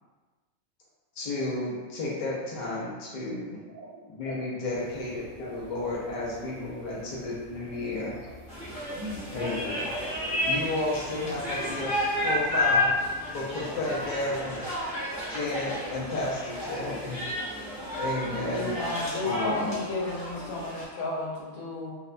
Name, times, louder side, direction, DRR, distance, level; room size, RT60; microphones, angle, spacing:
voice 1, 1.2-3.6 4.1-8.2 9.3-9.8 10.4-11.9 12.2-12.9 13.3-14.6 15.3-17.2 17.9-18.8 19.2-19.8, left 2 dB, 70° left, -6 dB, 0.4 m, -32 dB
voice 2, 3.7-4.0 4.8-5.0 6.7-7.3 7.7-7.8 8.1-8.6 9.0-9.3 10.0-10.3, equal, 70° right, -3 dB, 0.9 m, -44 dB
sound 1, 4.7-14.8, right 1 dB, 50° right, 1.1 m, -49 dB
sound 2, 8.5-20.8, left 1 dB, 20° left, 0.5 m, -31 dB
voice 3, 18.4-21.9, left 2 dB, 85° left, -3 dB, 1.1 m, -32 dB
2.6 x 2.1 x 2.4 m, 1.3 s
omnidirectional pair, 1.4 m